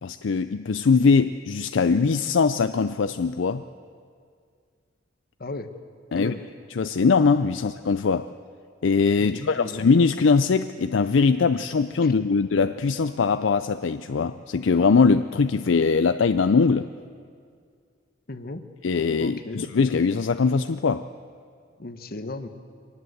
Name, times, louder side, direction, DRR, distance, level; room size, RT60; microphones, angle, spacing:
voice 1, 0.0-3.6 6.1-6.3 6.8-8.3 8.8-16.9 18.8-21.1, left 4 dB, 85° left, 11 dB, 0.5 m, -21 dB
voice 2, 6.1-6.4 9.2-9.9 12.0-12.1 18.3-18.6 19.2-19.7 21.8-22.5, left 2 dB, 50° left, 9 dB, 1.1 m, -35 dB
24.0 x 19.0 x 7.9 m, 2.2 s
head